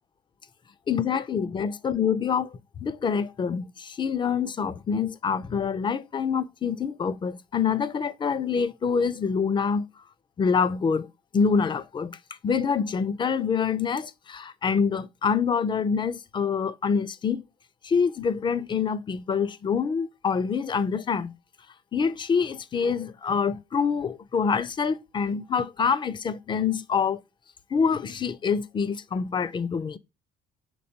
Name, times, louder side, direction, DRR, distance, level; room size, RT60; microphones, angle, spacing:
voice 1, 0.9-2.5 2.8-9.9 10.4-11.1 11.3-12.2 12.4-17.4 17.8-21.3 21.9-27.2 27.7-30.0, left 6 dB, 30° left, 0.4 m, -26 dB
4.5 x 3.5 x 2.6 m
cardioid pair, 110°, 17 cm